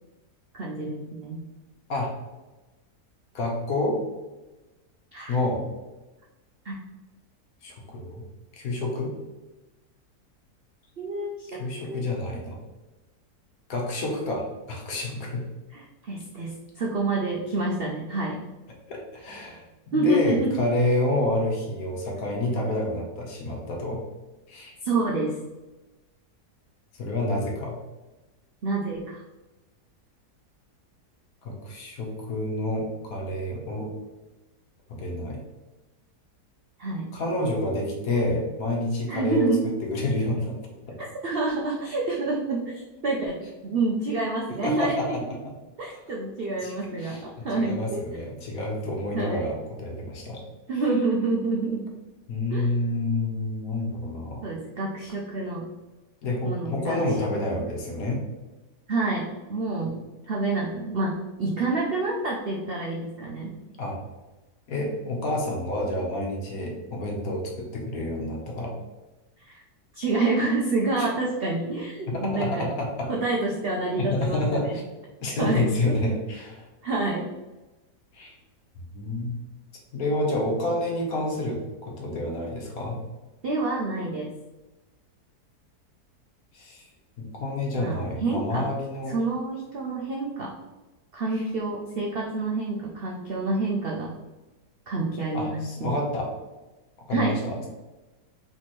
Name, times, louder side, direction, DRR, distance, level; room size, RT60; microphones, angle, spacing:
voice 1, 0.5-1.4 5.1-5.4 6.6-6.7 11.0-11.6 11.9-12.0 15.7-18.4 19.9-20.5 24.8-25.4 28.6-29.2 36.8-37.1 39.1-39.6 41.0-43.4 43.6-45.2 45.8-48.0 49.1-49.4 50.7-51.8 52.5-52.7 54.4-55.7 56.4-57.0 58.9-59.9 60.3-63.5 69.4-69.6 69.9-72.7 73.1-74.8 75.4-75.7 76.8-77.3 83.4-84.3 87.8-88.6 89.1-90.5 91.1-94.1 94.9-96.0 97.1-97.3, right 3 dB, 65° right, -2 dB, 0.5 m, -28 dB
voice 2, 3.3-4.0 5.3-5.6 7.6-8.2 8.5-9.1 11.5-12.6 13.7-15.4 18.9-24.0 24.5-24.7 27.0-27.8 31.4-33.9 34.9-35.4 37.1-39.5 39.8-40.6 40.9-41.0 44.6-45.5 45.8-45.9 46.6-50.4 52.3-54.5 56.2-58.2 63.8-64.0 64.7-68.7 71.0-71.1 72.1-73.1 74.0-74.8 75.2-76.6 78.1-78.4 78.9-79.4 79.9-83.0 86.5-86.8 87.2-89.2 91.3-91.4 95.3-96.3 97.1-97.7, left 1 dB, 65° left, -1 dB, 1.3 m, -28 dB
3.5 x 3.1 x 4.2 m, 1.1 s
omnidirectional pair, 1.8 m